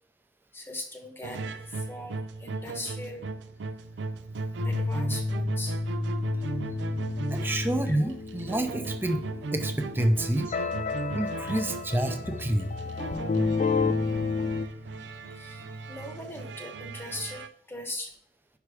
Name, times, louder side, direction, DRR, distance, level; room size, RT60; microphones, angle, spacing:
voice 1, 0.5-3.3 4.6-5.8 7.9-8.1 10.5-10.6 11.0-11.7 15.1-18.1, left 1 dB, 15° left, 3 dB, 1.0 m, -40 dB
sound 1, 1.2-17.5, right 3 dB, 65° right, 0.4 m, -37 dB
sound 2, 4.6-14.7, left 3 dB, 40° left, 0.4 m, -31 dB
voice 2, 7.3-9.2 9.5-10.5 11.1-12.7, right 1 dB, 10° right, 5 dB, 0.6 m, -28 dB
sound 3, 11.9-16.9, left 6 dB, 65° left, 0.8 m, -53 dB
5.6 x 4.9 x 4.8 m, 0.63 s
head